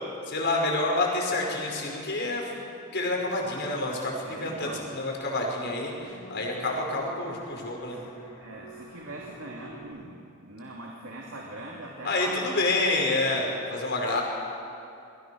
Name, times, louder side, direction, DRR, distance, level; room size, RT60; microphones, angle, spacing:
voice 1, 0.3-8.0 12.0-14.2, left 2 dB, 55° left, 0 dB, 5.5 m, -28 dB
sound 1, 3.1-9.9, right 1 dB, 85° left, 7.6 m, -47 dB
voice 2, 4.2-4.9 6.6-6.8 7.9-8.0 8.4-12.6, right 1 dB, 65° right, -2 dB, 2.8 m, -41 dB
28.0 x 22.0 x 6.4 m, 2.6 s
head